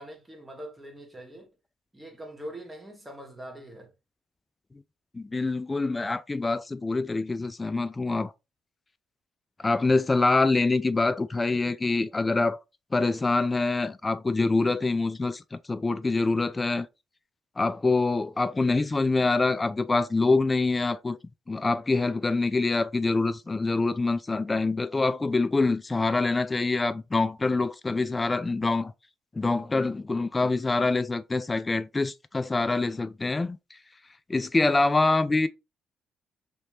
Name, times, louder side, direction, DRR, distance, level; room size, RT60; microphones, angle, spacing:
voice 1, 0.0-1.5 1.9-3.9, right 1 dB, 15° right, 1.3 m, -42 dB
voice 2, 5.1-8.3 9.6-12.6 12.9-16.9 17.6-21.2 21.5-28.9 29.3-33.8 34.3-35.5, left 3 dB, 25° left, 0.3 m, -25 dB
3.0 x 2.8 x 3.3 m
supercardioid pair, 75°, 0 cm